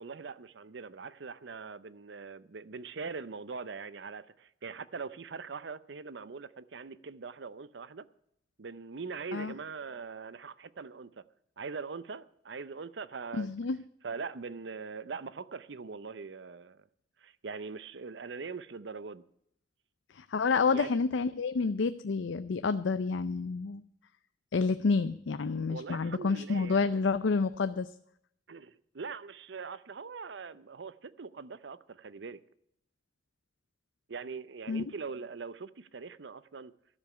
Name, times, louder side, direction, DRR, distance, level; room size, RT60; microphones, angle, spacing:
voice 1, 0.0-8.1 8.6-11.2 11.6-13.5 14.0-16.9 17.2-19.2 20.7-21.0 25.7-26.9 28.5-32.4 34.1-36.7, right 5 dB, 70° right, 0.6 m, -42 dB
voice 2, 13.3-13.8 20.1-23.8 24.5-27.9 34.7-34.8, left 4 dB, 80° left, 0.5 m, -29 dB
13.0 x 7.0 x 9.4 m
head